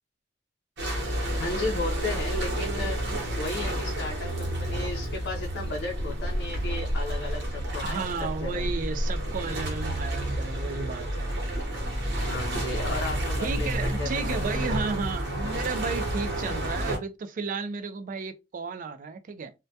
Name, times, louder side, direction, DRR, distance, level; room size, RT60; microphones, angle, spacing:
sound 1, 0.8-17.0, right 1 dB, 70° right, 0.9 m, -30 dB
voice 1, 1.4-3.0 3.4-8.7 12.2-14.7, left 2 dB, 70° left, 0.5 m, -34 dB
voice 2, 7.8-11.3 13.4-19.5, right 4 dB, 50° right, 0.3 m, -33 dB
2.2 x 2.1 x 2.6 m
head